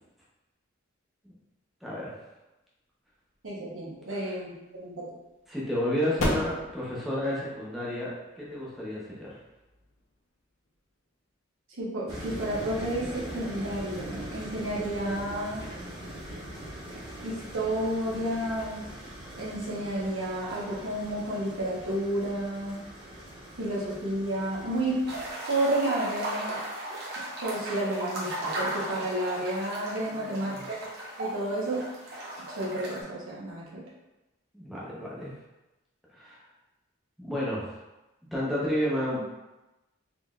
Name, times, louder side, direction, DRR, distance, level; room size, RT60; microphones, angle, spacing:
voice 1, 1.8-2.1 4.1-4.4 5.5-9.4 30.1-30.7 34.5-35.4 36.1-36.4 37.2-37.8 38.3-39.2, equal, ahead, -7 dB, 0.8 m, -31 dB
voice 2, 3.4-5.1 11.8-15.6 17.2-18.9 19.4-22.8 23.6-25.1 25.5-26.6 27.4-30.8 31.2-31.9 32.5-33.8, right 1 dB, 80° right, -6 dB, 1.1 m, -31 dB
sound 1, 3.7-10.9, left 1 dB, 80° left, 0.8 m, -37 dB
sound 2, 12.1-25.3, right 1 dB, 20° right, 1.2 m, -41 dB
sound 3, 25.1-33.0, right 1 dB, 50° right, 1.0 m, -36 dB
3.9 x 3.2 x 2.4 m, 1.0 s
head